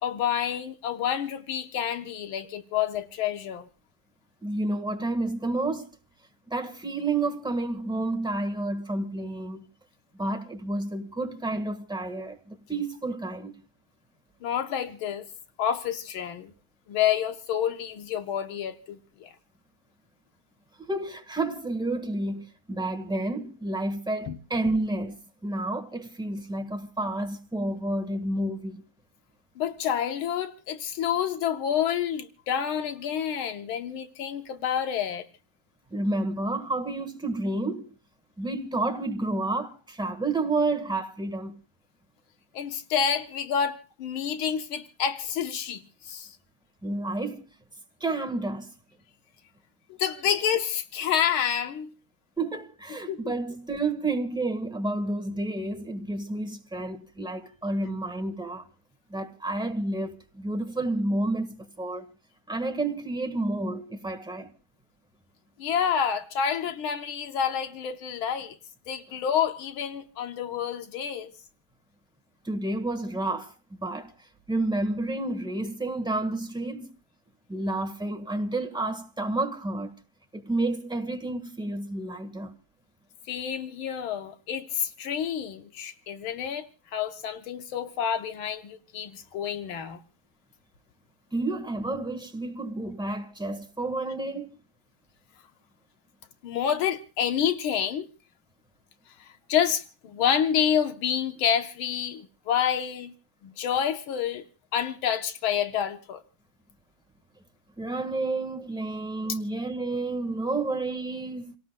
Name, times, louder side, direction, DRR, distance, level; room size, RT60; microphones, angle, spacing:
voice 1, 0.0-3.7 14.4-15.3 15.6-16.5 16.9-19.3 24.3-24.4 29.6-35.2 42.5-46.4 50.0-51.9 53.1-53.3 65.6-68.6 68.9-71.3 83.3-86.7 86.9-90.0 96.4-98.1 99.2-103.1 103.4-104.4 104.7-106.2, left 8 dB, 85° left, 1.8 m, -28 dB
voice 2, 4.4-5.9 6.5-9.7 10.1-13.5 20.8-28.8 35.9-37.9 38.4-41.5 46.8-47.4 48.0-48.7 52.4-58.6 59.1-62.1 62.5-64.5 72.4-73.5 73.8-74.1 74.5-76.9 77.5-80.0 80.3-82.5 91.3-94.5 107.8-111.6, right 2 dB, 5° right, 0.9 m, -30 dB
28.5 x 18.0 x 2.2 m
omnidirectional pair, 2.2 m